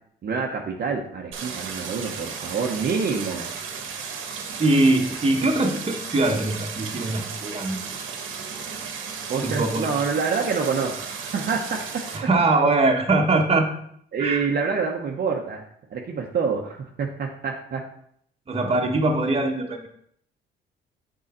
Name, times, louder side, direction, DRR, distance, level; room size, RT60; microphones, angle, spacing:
voice 1, 0.2-3.5 9.3-11.8 14.1-15.6 15.9-17.8, right 5 dB, 50° right, 0 dB, 0.9 m, -27 dB
Stream, 1.3-12.2, right 6 dB, 85° right, 1.2 m, -34 dB
voice 2, 4.6-7.8 9.4-9.9 12.1-13.7 14.2-14.5 18.5-19.9, right 2 dB, 30° right, 2 dB, 1.2 m, -22 dB
6.5 x 4.8 x 4.3 m, 0.67 s
cardioid pair, 90°, 20 cm